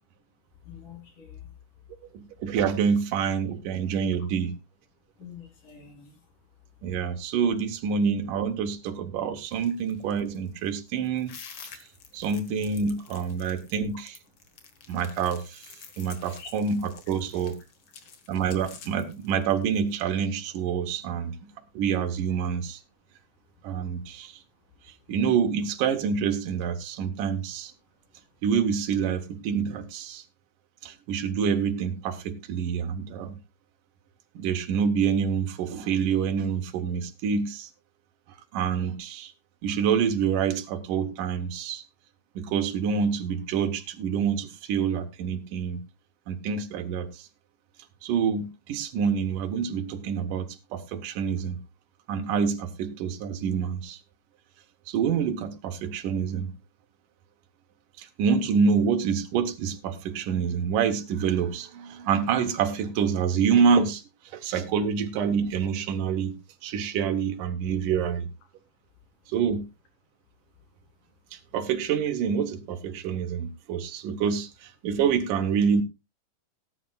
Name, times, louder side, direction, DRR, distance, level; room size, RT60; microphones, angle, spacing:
voice 1, 0.6-1.5 5.2-6.3 14.9-15.0 16.4-16.5 24.7-24.8, left 7 dB, 80° left, 5.0 m, -46 dB
voice 2, 2.1-4.5 6.8-11.4 12.1-14.1 14.9-17.6 18.3-21.4 21.7-22.8 23.6-24.4 25.1-27.7 28.4-30.2 30.8-33.4 34.4-37.7 38.5-39.3 39.6-41.8 42.4-45.8 46.3-47.3 48.0-51.6 52.1-54.0 54.9-56.5 58.0-64.0 64.3-68.3 69.3-69.7 71.3-74.5 74.8-75.8, right 6 dB, 85° right, 2.8 m, -27 dB
sound 1, 9.4-20.0, left 6 dB, 45° left, 2.0 m, -49 dB
18.5 x 10.0 x 2.4 m
omnidirectional pair, 3.6 m